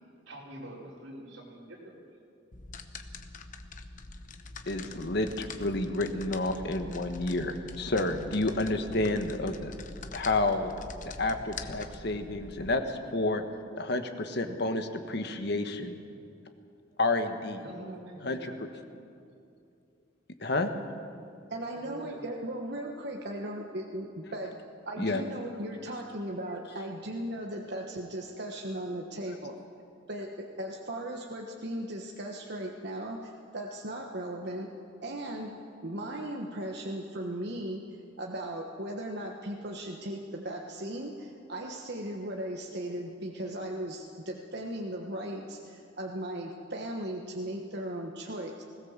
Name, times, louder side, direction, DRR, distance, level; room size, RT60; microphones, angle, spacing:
voice 1, 0.3-2.0 17.6-19.0 21.7-22.2, right 1 dB, 85° right, -3 dB, 4.9 m, -45 dB
sound 1, 2.5-12.7, left 3 dB, 40° left, 1.0 m, -44 dB
voice 2, 4.7-9.7 10.1-10.7 11.0-13.4 13.8-16.0 17.0-17.6 18.2-18.5 20.4-20.7 25.0-25.2, left 2 dB, 60° left, 7 dB, 1.5 m, -30 dB
voice 3, 21.5-24.5 24.9-29.6 30.1-30.3 30.6-34.7 35.0-35.5 35.8-37.8 38.2-48.6, right 1 dB, 60° right, 1 dB, 1.4 m, -37 dB
20.0 x 17.0 x 7.4 m, 2.5 s
head